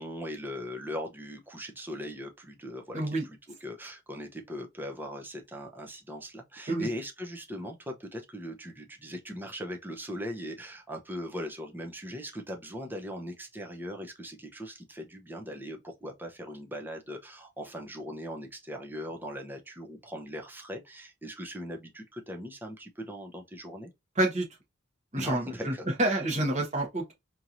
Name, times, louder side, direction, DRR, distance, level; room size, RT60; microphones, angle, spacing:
voice 1, 0.0-23.9 25.1-25.8, equal, 10° right, 0.7 m, -39 dB
voice 2, 2.9-3.2 6.7-6.9 24.2-24.4 25.1-25.7 26.0-27.1, right 1 dB, 35° right, 1.3 m, -28 dB
4.4 x 2.9 x 2.6 m
head